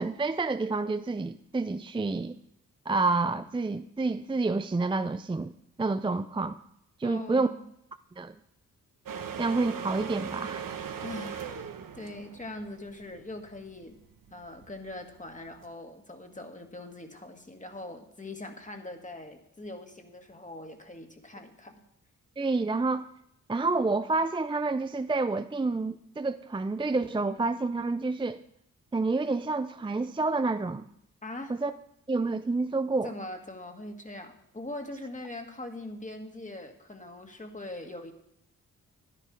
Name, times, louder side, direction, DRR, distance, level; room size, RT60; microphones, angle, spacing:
voice 1, 0.0-2.4 2.9-5.5 5.8-6.6 7.0-7.5 8.2-8.3 9.4-10.8 22.4-23.0 23.5-28.4 28.9-30.9 31.5-31.7 32.1-33.1, right 3 dB, 15° right, 0.5 m, -28 dB
voice 2, 7.0-7.7 11.0-11.6 12.0-14.0 14.3-21.8 31.2-31.5 33.0-38.1, left 2 dB, 20° left, 1.9 m, -42 dB
sound 1, 9.1-15.7, right 7 dB, 70° right, 1.2 m, -40 dB
10.5 x 10.0 x 5.1 m
cardioid pair, 55°, 34 cm